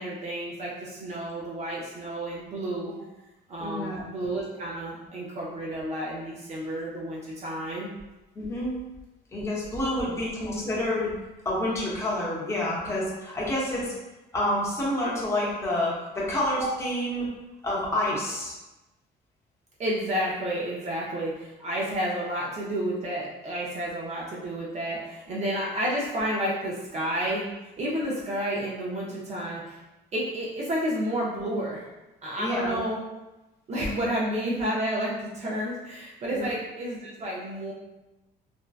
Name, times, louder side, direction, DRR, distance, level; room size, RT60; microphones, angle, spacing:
voice 1, 0.0-2.9 3.5-7.9 19.8-27.4 27.8-29.8 30.1-31.8 32.2-33.0 33.7-37.7, right 1 dB, 40° right, -5 dB, 0.5 m, -30 dB
voice 2, 3.6-4.0 8.3-8.7 9.3-11.1 11.4-13.9 14.3-17.3 17.6-18.6 32.4-32.8 36.3-36.5, left 1 dB, 15° left, -6 dB, 0.7 m, -28 dB
2.6 x 2.1 x 2.3 m, 1.0 s
cardioid pair, 110°, 17 cm